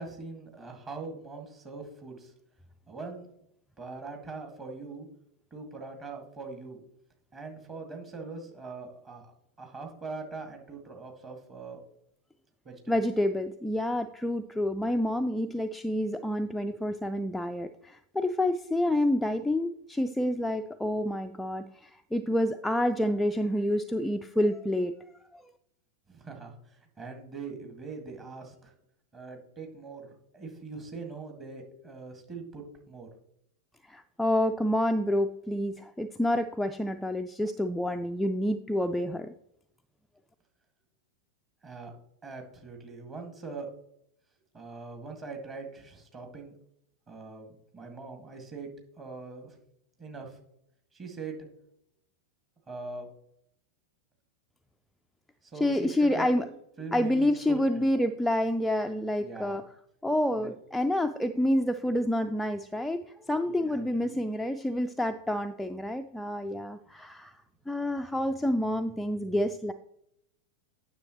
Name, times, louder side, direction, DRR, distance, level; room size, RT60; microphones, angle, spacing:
voice 1, 0.0-2.3 2.9-3.3 3.8-5.1 5.5-6.8 7.3-9.3 9.6-11.8 12.6-13.0 26.1-28.7 29.1-33.1 41.6-41.9 42.2-43.7 44.5-46.5 47.1-48.7 49.0-49.6 50.0-50.4 50.9-51.5 52.7-53.1 55.4-56.3 56.8-57.6 59.2-59.7 60.3-60.5 63.5-64.2, right 4 dB, 25° right, 3 dB, 1.8 m, -42 dB
voice 2, 12.9-24.9 25.3-25.4 33.9-39.3 55.6-56.5 56.9-59.6 60.0-67.4 67.7-69.7, left 1 dB, 5° left, 5 dB, 0.3 m, -28 dB
9.5 x 6.4 x 3.0 m, 0.75 s
figure-of-eight pair, 90°, 0 cm